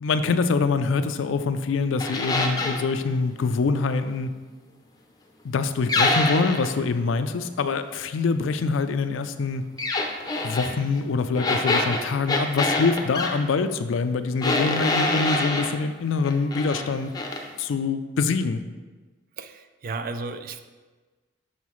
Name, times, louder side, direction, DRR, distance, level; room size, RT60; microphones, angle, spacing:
voice 1, 0.0-4.3 5.4-9.6 10.4-17.1 17.6-18.6, left 4 dB, 70° left, 10 dB, 0.4 m, -25 dB
sound 1, 2.0-2.9 5.9-6.7 9.8-10.7 11.4-13.3 14.4-15.7 16.2-16.9 17.1-17.4, left 2 dB, 20° left, 0.5 m, -25 dB
voice 2, 19.4-20.6, right 3 dB, 45° right, 9 dB, 0.3 m, -34 dB
6.5 x 5.5 x 3.1 m, 1.3 s
head